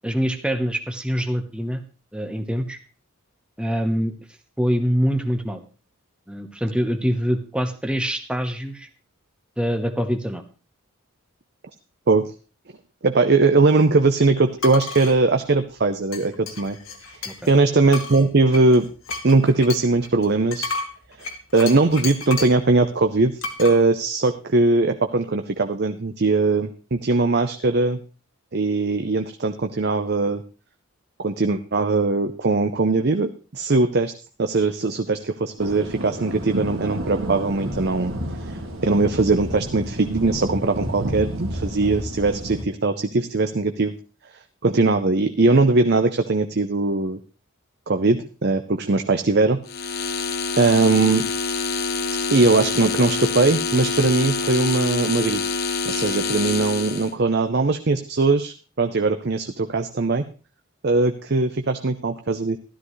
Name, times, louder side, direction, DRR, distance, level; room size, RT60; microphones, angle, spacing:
voice 1, 0.0-1.8 2.1-2.8 3.6-4.1 4.6-5.6 6.3-8.9 9.6-10.4 17.2-17.3, equal, 5° right, 6 dB, 1.0 m, -24 dB
voice 2, 13.0-16.8 17.1-17.2 17.5-18.9 19.2-20.7 21.2-28.0 28.5-30.4 31.2-34.1 34.4-38.1 38.4-38.5 38.8-43.9 44.6-47.2 47.9-49.6 49.9-50.0 50.6-51.3 52.3-55.4 55.9-60.2 60.8-62.6, right 3 dB, 50° right, 7 dB, 0.7 m, -20 dB
sound 1, 14.6-15.1 16.1-17.5 17.9-22.6 23.4-23.8, left 4 dB, 65° left, 1.8 m, -32 dB
sound 2, 35.6-42.6, right 1 dB, 65° right, 2.1 m, -30 dB
sound 3, 49.7-57.1, left 4 dB, 45° left, 1.0 m, -26 dB
13.0 x 12.5 x 3.2 m, 0.35 s
head